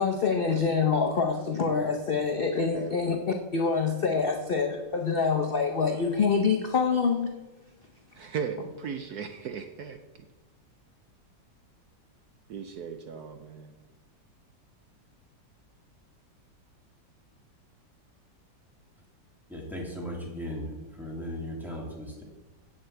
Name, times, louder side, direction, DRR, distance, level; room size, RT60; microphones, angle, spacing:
voice 1, 0.0-7.4, left 5 dB, 55° left, 3 dB, 0.6 m, -26 dB
voice 2, 2.6-2.9 8.2-10.0 12.5-13.7, right 6 dB, 65° right, 7 dB, 1.1 m, -37 dB
voice 3, 19.5-22.2, equal, ahead, -2 dB, 2.5 m, -37 dB
7.8 x 7.6 x 8.1 m, 1.1 s
omnidirectional pair, 2.0 m